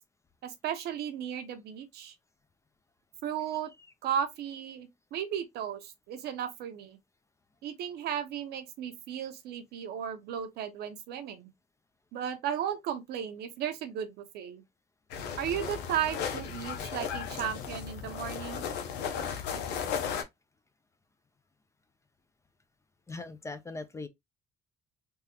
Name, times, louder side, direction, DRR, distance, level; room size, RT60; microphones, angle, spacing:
voice 1, 0.4-2.1 3.2-3.7 4.0-7.0 7.6-11.5 12.1-14.6 15.4-18.6, right 9 dB, 70° right, 0.8 m, -35 dB
sound 1, 15.1-20.2, left 7 dB, 90° left, 0.8 m, -35 dB
voice 2, 23.1-24.1, left 3 dB, 15° left, 0.5 m, -40 dB
3.6 x 2.4 x 2.8 m
cardioid pair, 110°, 17 cm